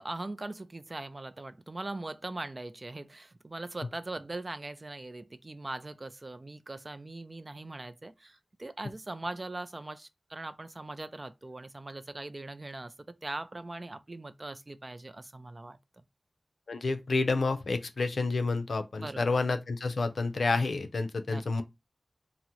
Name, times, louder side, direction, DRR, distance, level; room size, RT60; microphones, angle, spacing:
voice 1, 0.0-15.8 19.0-19.4 21.3-21.6, right 2 dB, 40° right, 0.3 m, -41 dB
voice 2, 16.7-21.6, left 3 dB, 80° left, 0.4 m, -29 dB
3.5 x 2.0 x 2.8 m
cardioid pair, 45°, 0 cm